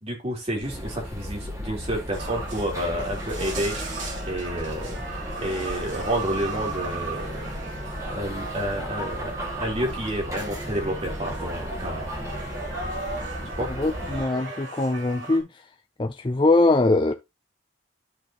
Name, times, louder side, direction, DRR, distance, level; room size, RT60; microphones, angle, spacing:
voice 1, 0.0-3.8 4.3-7.5 8.1-12.0 13.6-13.7, equal, 30° right, 2.9 m, -30 dB
sound 1, 0.6-14.2, equal, 15° right, 1.9 m, -35 dB
sound 2, 2.1-15.4, right 3 dB, 70° right, 2.7 m, -36 dB
voice 2, 13.7-15.5 16.0-17.1, left 2 dB, 25° left, 0.5 m, -22 dB
13.0 x 4.4 x 2.9 m
head